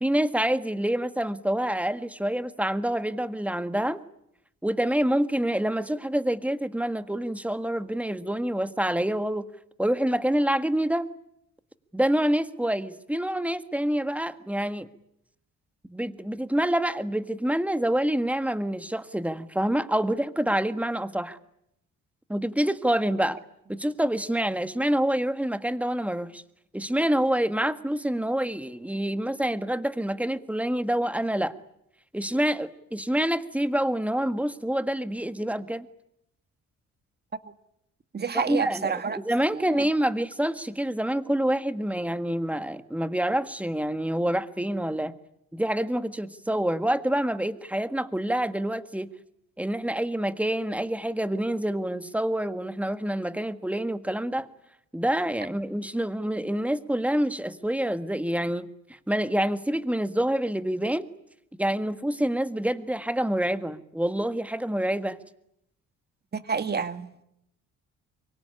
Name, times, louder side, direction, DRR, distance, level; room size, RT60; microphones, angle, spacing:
voice 1, 0.0-4.0 4.6-9.4 9.8-11.1 11.9-14.9 15.8-21.4 22.3-23.4 23.7-26.4 26.7-31.6 32.1-35.9 38.3-45.1 45.5-49.1 49.6-54.5 54.9-58.7 59.1-61.1 61.6-65.2, right 1 dB, 5° right, 1.7 m, -27 dB
voice 2, 38.1-39.2 39.5-39.9 66.3-67.1, right 6 dB, 35° right, 2.0 m, -29 dB
24.0 x 23.5 x 10.0 m
cardioid pair, 90°, 30 cm